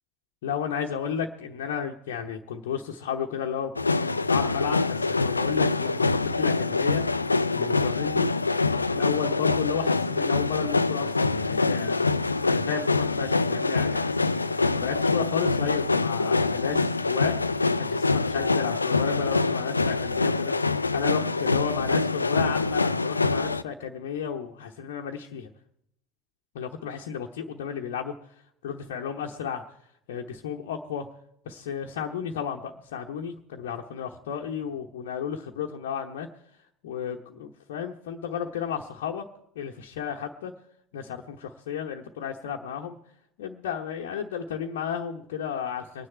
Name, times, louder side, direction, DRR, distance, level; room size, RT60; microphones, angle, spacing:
voice 1, 0.4-3.7 4.0-7.0 7.5-8.3 8.7-12.1 12.4-17.4 17.8-20.5 20.9-25.5 26.5-28.1 28.6-29.6 30.1-31.1 31.5-36.3 36.8-39.3 39.5-40.5 40.9-43.0 43.4-46.1, left 7 dB, 70° left, 1 dB, 1.0 m, -33 dB
sound 1, 3.8-23.6, left 3 dB, 90° left, 0.4 m, -25 dB
23.5 x 9.7 x 4.5 m, 0.73 s
figure-of-eight pair, 70°, 0 cm